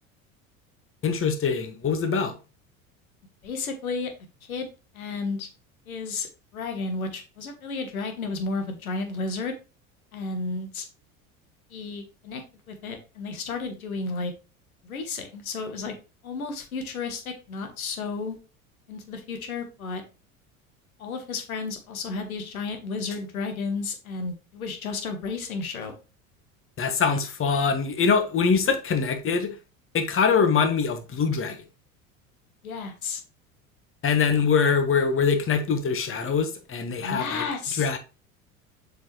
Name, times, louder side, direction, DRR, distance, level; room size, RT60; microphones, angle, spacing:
voice 1, 1.0-2.3 26.8-29.5 29.9-31.6 34.0-37.4 37.8-38.0, left 5 dB, 30° left, 1.4 m, -23 dB
voice 2, 3.4-4.1 4.5-4.7 4.9-5.5 5.9-9.5 10.1-10.8 11.7-12.4 12.7-14.3 14.8-15.9 16.2-18.4 18.9-20.0 21.0-26.0 32.6-33.2 37.0-37.9, left 4 dB, 85° left, 1.5 m, -32 dB
7.1 x 4.7 x 3.1 m
hypercardioid pair, 75°, 41 cm